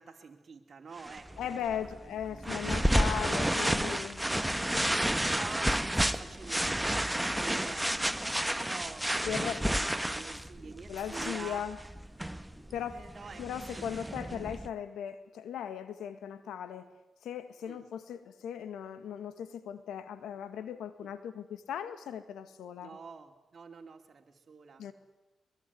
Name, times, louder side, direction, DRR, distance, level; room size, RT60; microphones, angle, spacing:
voice 1, 0.0-2.0 2.3-2.6 5.2-8.2 8.5-11.6 12.9-14.6 17.6-17.8 21.0-21.1 22.8-24.9, right 5 dB, 50° right, 2 dB, 2.7 m, -47 dB
sound 1, 1.0-14.7, right 1 dB, 5° right, 1.6 m, -31 dB
voice 2, 1.4-4.3 5.1-5.2 9.3-9.9 10.9-11.8 12.7-13.0 13.4-16.9 17.2-22.9 24.8-24.9, left 9 dB, 80° left, 11 dB, 2.0 m, -38 dB
23.0 x 22.5 x 9.6 m, 1.1 s
supercardioid pair, 50°, 0 cm